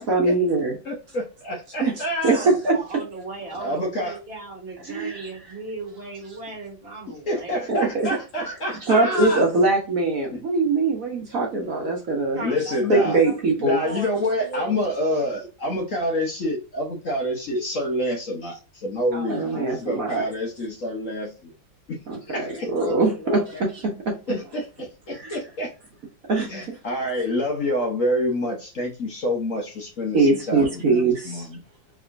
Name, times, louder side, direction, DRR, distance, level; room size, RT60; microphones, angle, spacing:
voice 1, 0.0-0.7 1.8-1.9 2.2-2.8 4.9-5.3 7.7-8.1 8.9-12.4 12.9-13.8 19.3-20.2 22.1-23.4 24.1-24.4 25.1-25.4 26.3-26.7 30.1-31.5, right 3 dB, 55° right, 1.3 m, -22 dB
voice 2, 0.8-2.5 3.6-4.2 7.3-9.5 10.3-10.4 12.4-13.2 13.6-21.5 21.9-22.0 22.3-22.9 24.3-25.7 26.5-31.6, left 1 dB, 50° left, 1.1 m, -27 dB
voice 3, 2.3-7.9 12.3-15.3 19.1-19.8 22.8-23.7, right 2 dB, 35° right, 1.4 m, -37 dB
4.1 x 3.5 x 2.6 m
omnidirectional pair, 2.0 m